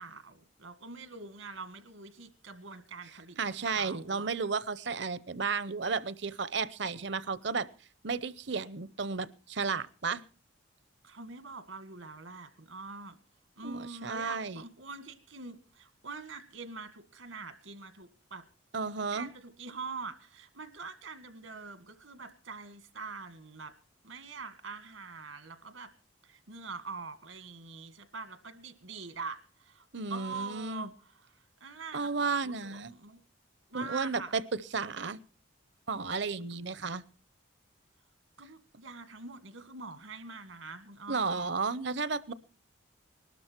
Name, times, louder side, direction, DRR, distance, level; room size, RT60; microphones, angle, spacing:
voice 1, 0.0-4.3 11.0-13.2 13.6-18.5 19.1-23.8 24.0-25.9 26.2-33.2 33.7-34.3 36.7-37.0 38.4-41.5 42.3-42.4, right 4 dB, 85° right, 11 dB, 1.8 m, -44 dB
voice 2, 3.4-7.7 8.0-10.2 13.6-14.6 18.7-19.3 29.9-30.9 31.9-32.9 33.7-35.2 35.9-37.0 41.1-42.3, right 4 dB, 60° right, 18 dB, 0.7 m, -33 dB
20.5 x 12.5 x 4.5 m, 0.37 s
head